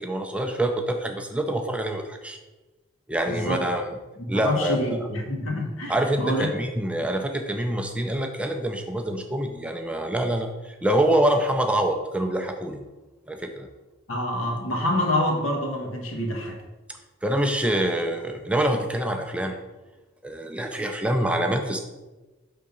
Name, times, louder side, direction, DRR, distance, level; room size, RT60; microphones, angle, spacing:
voice 1, 0.0-2.4 3.1-3.8 4.3-5.0 5.9-12.8 13.3-13.7 17.2-19.6 20.2-21.8, right 1 dB, 5° right, 4 dB, 0.4 m, -25 dB
voice 2, 3.3-3.6 4.2-6.5 14.1-16.6, left 1 dB, 85° left, 1 dB, 1.4 m, -27 dB
5.8 x 3.7 x 5.2 m, 1.1 s
head